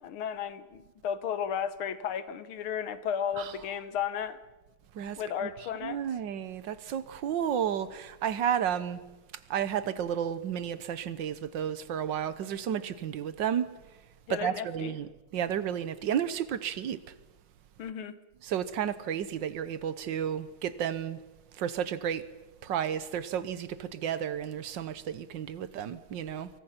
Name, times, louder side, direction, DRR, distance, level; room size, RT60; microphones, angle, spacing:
voice 1, 0.0-4.4 5.2-6.0 14.3-14.9 17.8-18.2, left 8 dB, 70° left, 1.9 m, -34 dB
voice 2, 4.9-5.5 5.8-9.0 9.5-13.7 14.3-17.0 18.4-21.2 21.5-22.2 22.6-26.5, right 9 dB, 65° right, 1.5 m, -32 dB
25.0 x 23.5 x 5.9 m
omnidirectional pair, 2.4 m